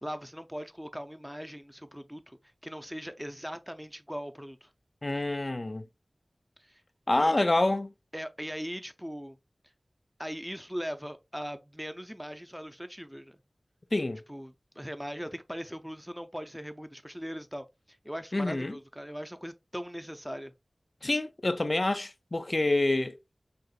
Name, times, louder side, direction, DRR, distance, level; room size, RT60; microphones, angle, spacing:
voice 1, 0.0-4.7 6.6-6.8 7.2-7.3 8.1-9.4 10.2-13.4 14.3-20.5, equal, 5° right, 0.5 m, -40 dB
voice 2, 5.0-5.9 7.1-7.9 13.9-14.2 18.3-18.8 21.0-23.1, left 2 dB, 45° left, 0.4 m, -27 dB
6.5 x 2.4 x 2.4 m
wide cardioid pair, 50°, 0 cm